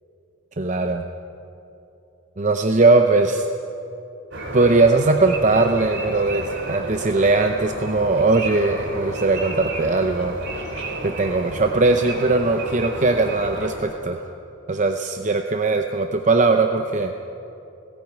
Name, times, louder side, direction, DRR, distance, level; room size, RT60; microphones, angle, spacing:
voice 1, 0.6-1.1 2.4-3.5 4.5-10.3 11.0-14.2 14.7-17.1, right 3 dB, 35° right, 5 dB, 0.7 m, -19 dB
sound 1, 4.3-13.7, right 2 dB, 60° right, 3.1 m, -31 dB
17.5 x 17.0 x 9.3 m, 2.8 s
head